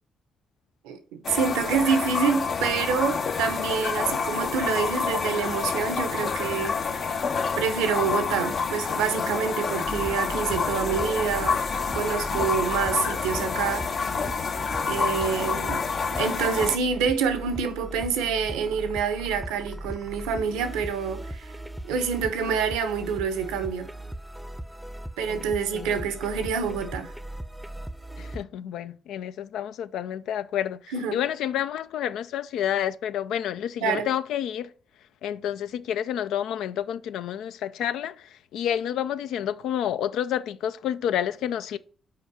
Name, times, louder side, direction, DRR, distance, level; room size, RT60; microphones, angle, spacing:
voice 1, 0.8-7.0 7.6-11.6 11.9-14.1 14.9-15.8 16.2-21.5 21.8-23.9 25.2-27.1 30.9-31.2 33.8-34.1, right 6 dB, 85° right, 0.7 m, -27 dB
sound 1, 1.2-16.8, left 5 dB, 60° left, 0.7 m, -28 dB
sound 2, 9.8-28.4, right 1 dB, 5° right, 0.6 m, -39 dB
voice 2, 25.3-26.0 28.2-34.7 35.2-41.8, left 10 dB, 75° left, 0.3 m, -29 dB
5.7 x 4.5 x 6.1 m
supercardioid pair, 50°, 0 cm